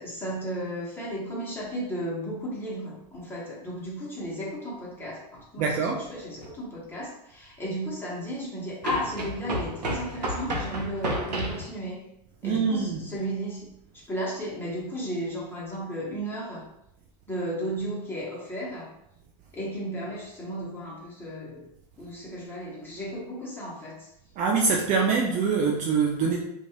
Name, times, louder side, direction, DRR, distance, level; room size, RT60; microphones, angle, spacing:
voice 1, 0.0-12.0 12.4-13.7 13.9-16.7 17.3-18.9 19.5-21.7 22.0-24.1, equal, 10° left, -5 dB, 1.1 m, -34 dB
voice 2, 5.6-6.0 12.4-13.0 24.4-26.4, right 5 dB, 35° right, 0 dB, 0.4 m, -24 dB
sound 1, 6.4-6.5 8.8-11.7, right 1 dB, 80° right, 0.8 m, -31 dB
2.5 x 2.4 x 3.0 m, 0.82 s
hypercardioid pair, 90°, 21 cm